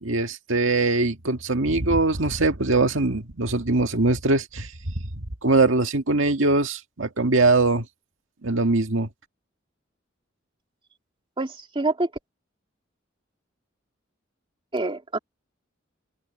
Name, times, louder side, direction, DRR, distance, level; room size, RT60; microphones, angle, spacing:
voice 1, 0.0-4.9 5.4-7.9 8.4-9.1, right 3 dB, 85° right, 1.9 m, -22 dB
voice 2, 11.4-12.1 14.7-15.2, right 2 dB, 25° right, 2.5 m, -26 dB
open air
head